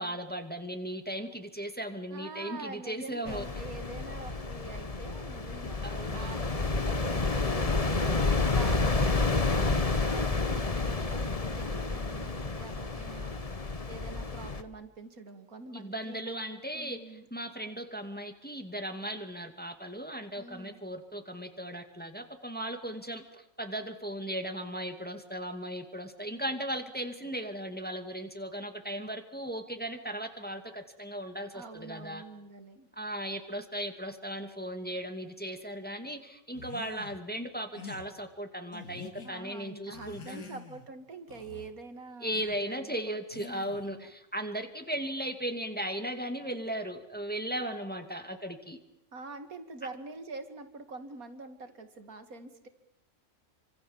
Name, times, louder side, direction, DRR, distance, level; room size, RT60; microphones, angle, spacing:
voice 1, 0.0-3.5 5.8-6.3 8.1-8.4 15.7-32.2 33.0-40.5 42.2-48.8, right 1 dB, 5° left, 6 dB, 2.2 m, -37 dB
voice 2, 2.1-5.9 6.1-13.3 13.9-16.4 16.7-17.3 20.4-20.8 31.5-32.9 39.2-44.1 49.1-52.7, right 3 dB, 70° right, 8 dB, 2.7 m, -46 dB
sound 1, 3.3-14.6, left 3 dB, 25° left, 1.3 m, -30 dB
sound 2, 36.5-37.2 37.7-38.1 38.7-39.3 39.9-40.9 41.3-41.7 42.3-42.6 43.3-43.9, left 5 dB, 75° left, 2.6 m, -47 dB
28.5 x 25.5 x 7.3 m, 0.82 s
omnidirectional pair, 1.5 m